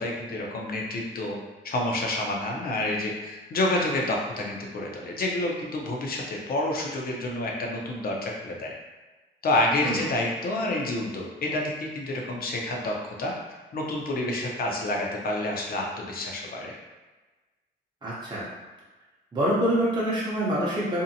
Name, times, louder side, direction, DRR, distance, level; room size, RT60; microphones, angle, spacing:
voice 1, 0.0-1.4 1.6-8.7 9.4-13.3 13.7-16.7, left 1 dB, 50° left, -1 dB, 0.6 m, -28 dB
voice 2, 18.0-18.5 19.3-21.0, equal, 25° right, -7 dB, 0.7 m, -26 dB
2.7 x 2.1 x 2.7 m, 1.2 s
cardioid pair, 90°, 20 cm